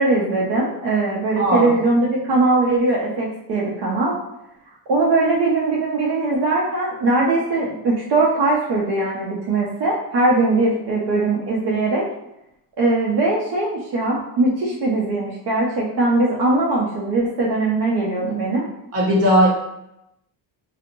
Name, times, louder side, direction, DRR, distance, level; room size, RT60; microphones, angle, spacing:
voice 1, 0.0-4.1 4.9-12.0 12.8-18.6, right 2 dB, 75° right, -4 dB, 0.6 m, -20 dB
voice 2, 1.4-1.7 18.9-19.5, equal, 35° right, -2 dB, 0.7 m, -17 dB
2.8 x 2.0 x 2.6 m, 0.85 s
cardioid pair, 160°, 41 cm